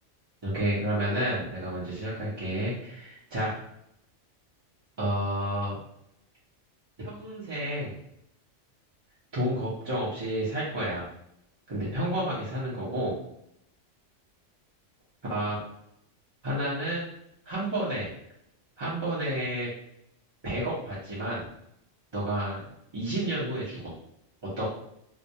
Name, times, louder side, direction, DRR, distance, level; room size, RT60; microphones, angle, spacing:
voice 1, 0.4-3.5 5.0-5.8 7.0-7.9 9.3-11.1 11.7-13.1 15.3-15.6 16.4-17.1 17.5-18.1 18.8-19.7 20.4-21.5 22.1-22.6 22.9-23.9 24.6-24.7, right 1 dB, 35° right, -9 dB, 0.4 m, -30 dB
2.2 x 2.1 x 2.7 m, 0.77 s
omnidirectional pair, 1.3 m